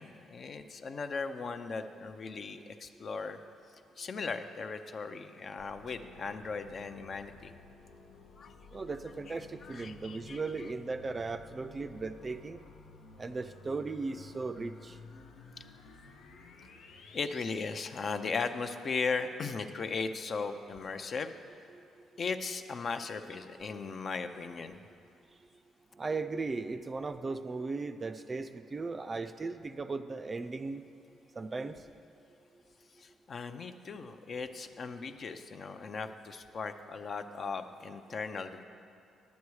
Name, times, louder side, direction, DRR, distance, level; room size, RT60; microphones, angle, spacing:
voice 1, 0.0-3.4 4.0-7.5 8.4-8.5 9.3-10.4 17.1-21.3 22.2-24.8 33.0-38.6, left 4 dB, 50° left, 8 dB, 0.5 m, -37 dB
sound 1, 5.6-17.6, left 4 dB, 90° left, 0.7 m, -54 dB
voice 2, 8.7-12.6 13.2-15.0 26.0-30.8 31.4-31.8, right 3 dB, 30° right, 9 dB, 0.4 m, -37 dB
10.5 x 8.2 x 4.7 m, 2.6 s
cardioid pair, 90°, 0 cm